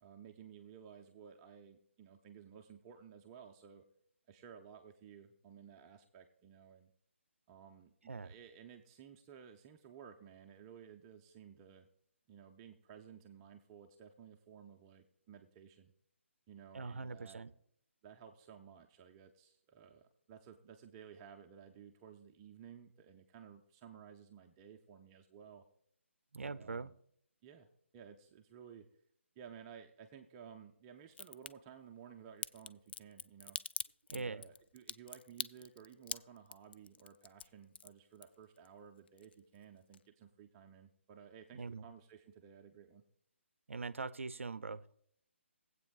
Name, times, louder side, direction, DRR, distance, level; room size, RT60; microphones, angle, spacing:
voice 1, 0.0-3.8 4.3-6.9 7.5-11.9 12.3-15.9 16.5-17.4 18.0-25.7 26.4-27.0 27.4-28.9 29.4-33.6 34.1-43.0, right 7 dB, 20° right, 3 dB, 0.5 m, -56 dB
voice 2, 16.7-17.5 26.3-26.9 34.1-34.4 41.5-41.9 43.7-45.0, right 4 dB, 75° right, 16 dB, 0.5 m, -42 dB
Crack, 31.1-31.5 32.4-38.7 39.0-39.6 39.9-40.0, left 7 dB, 50° left, 0.3 m, -43 dB
19.5 x 8.1 x 2.3 m, 0.68 s
figure-of-eight pair, 145°, 7 cm